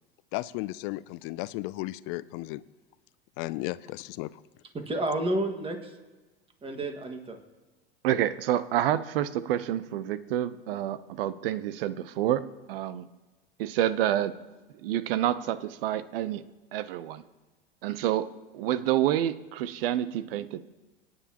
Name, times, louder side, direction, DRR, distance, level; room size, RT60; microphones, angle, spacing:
voice 1, 0.3-2.6 3.4-4.4, left 19 dB, 50° left, 18 dB, 0.5 m, -34 dB
voice 2, 4.7-5.9 6.6-7.4, right 1 dB, 20° right, 5 dB, 1.8 m, -30 dB
voice 3, 8.0-12.4 12.7-13.1 13.6-14.3 14.8-16.4 16.7-17.2 17.8-18.3 18.5-20.6, right 12 dB, 70° right, 15 dB, 0.8 m, -28 dB
25.0 x 9.8 x 3.0 m, 1.2 s
hypercardioid pair, 100°, 30 cm